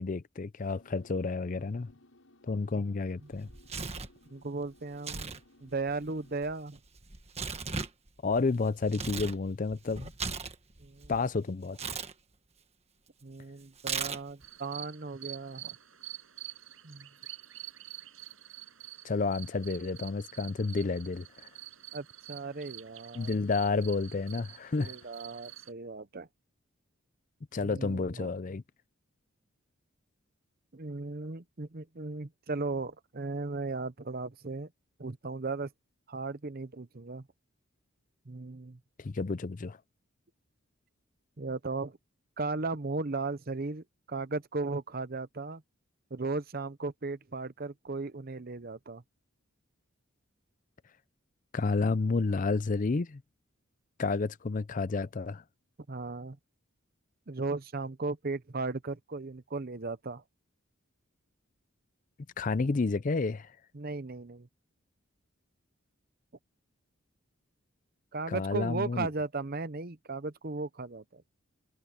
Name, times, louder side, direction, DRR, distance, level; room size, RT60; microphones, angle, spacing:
voice 1, 0.0-1.9 2.5-3.5 8.2-10.1 11.1-11.8 19.0-21.5 23.1-25.0 27.5-28.6 39.0-39.8 51.5-53.2 54.0-55.4 62.4-63.5 68.3-69.1, left 3 dB, 40° left, 0.5 m, -30 dB
sound 1, 0.7-6.4, left 1 dB, 75° left, 7.4 m, -61 dB
Tearing, 3.3-4.2 4.9-5.4 5.7-9.4 9.7-11.2 11.7-12.1 13.8-14.4, right 5 dB, 30° right, 1.4 m, -37 dB
voice 2, 4.3-6.8 10.8-11.2 13.2-15.7 16.8-17.1 21.9-23.4 24.8-26.3 27.6-28.3 30.7-34.7 35.0-35.7 36.1-37.3 38.3-38.8 41.4-42.0 42.4-45.6 46.1-49.0 55.9-56.4 57.3-60.2 62.6-62.7 63.7-64.5 68.1-71.2, right 3 dB, 45° right, 0.8 m, -36 dB
sound 2, 14.4-25.7, right 14 dB, 70° right, 7.3 m, -48 dB
head